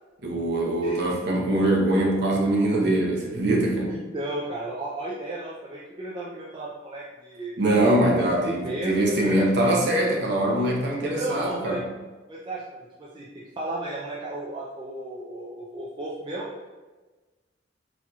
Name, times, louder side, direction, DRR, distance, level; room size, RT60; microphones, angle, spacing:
voice 1, 0.2-3.9 7.6-11.8, right 1 dB, 65° right, -1 dB, 0.8 m, -23 dB
voice 2, 3.9-7.6 8.2-9.5 11.1-11.8 12.3-16.5, right 1 dB, 25° right, -6 dB, 0.4 m, -34 dB
4.3 x 2.8 x 2.3 m, 1.3 s
head